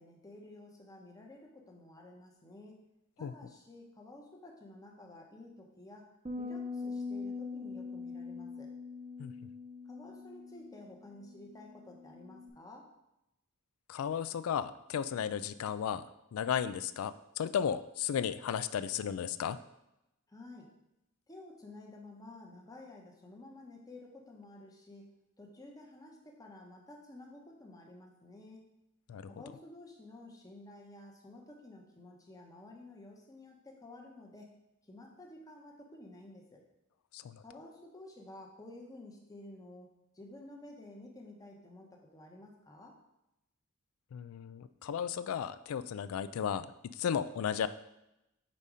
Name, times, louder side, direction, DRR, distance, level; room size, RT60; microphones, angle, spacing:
voice 1, 0.0-2.8 3.2-6.1 6.4-8.7 9.9-12.9 20.3-20.7 21.3-25.1 25.4-28.6 29.3-34.5 34.8-36.6 37.4-39.9 40.1-42.9, left 2 dB, 15° left, 0 dB, 0.9 m, -52 dB
sound 1, 6.3-12.5, left 4 dB, 25° right, 0.5 m, -42 dB
voice 2, 13.9-16.0 16.3-19.6 29.1-29.3 37.1-37.4 44.1-46.7 47.0-47.7, left 8 dB, 80° left, 14 dB, 0.3 m, -34 dB
5.3 x 4.1 x 4.8 m, 0.89 s
head